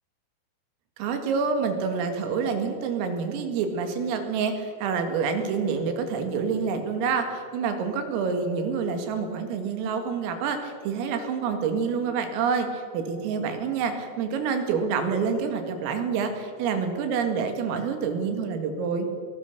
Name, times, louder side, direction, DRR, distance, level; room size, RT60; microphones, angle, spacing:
voice 1, 1.0-19.1, right 5 dB, 80° right, 6 dB, 4.7 m, -27 dB
21.5 x 19.0 x 6.8 m, 2.3 s
omnidirectional pair, 6.0 m